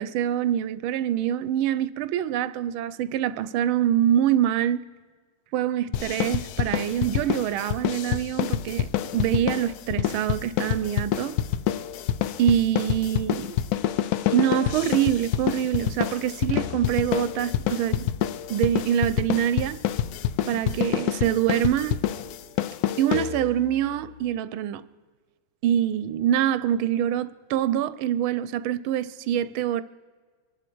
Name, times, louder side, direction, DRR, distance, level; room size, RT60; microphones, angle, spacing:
voice 1, 0.0-4.8 5.5-11.3 12.4-13.6 14.3-18.1 18.5-19.8 20.5-22.0 23.0-24.8 25.6-29.8, right 10 dB, 85° right, 1.5 m, -25 dB
sound 1, 5.9-23.7, left 11 dB, 80° left, 0.8 m, -27 dB
25.5 x 11.0 x 4.6 m
omnidirectional pair, 2.2 m